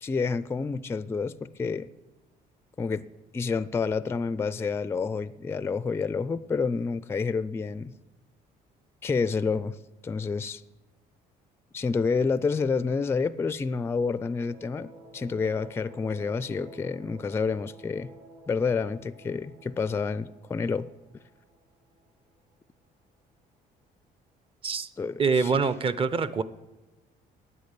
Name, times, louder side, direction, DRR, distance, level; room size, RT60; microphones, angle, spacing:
voice 1, 0.0-1.9 2.8-3.1 3.3-7.9 9.0-9.8 10.0-10.6 11.7-18.1 18.5-20.9 25.0-25.5, left 5 dB, 15° left, 0.3 m, -29 dB
sound 1, 13.7-22.3, right 2 dB, 60° right, 2.0 m, -52 dB
voice 2, 25.2-26.4, right 5 dB, 35° right, 0.6 m, -25 dB
9.3 x 8.5 x 8.2 m
cardioid pair, 110°, 17 cm